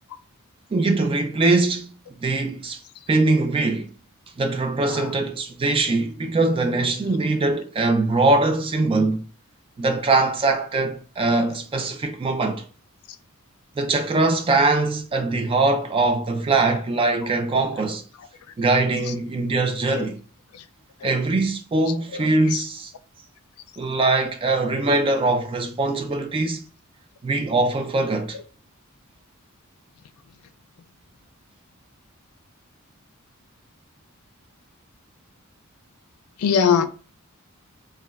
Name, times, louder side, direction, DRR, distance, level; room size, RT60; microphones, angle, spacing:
voice 1, 0.7-2.8 3.1-3.9 4.4-9.2 9.8-12.6 13.8-18.0 18.6-20.2 21.0-22.9 23.8-26.6 27.2-28.4, right 2 dB, 25° right, 0.3 m, -22 dB
voice 2, 22.1-22.6 28.3-28.4 36.4-36.9, left 7 dB, 75° left, 0.3 m, -23 dB
2.2 x 2.1 x 3.3 m
head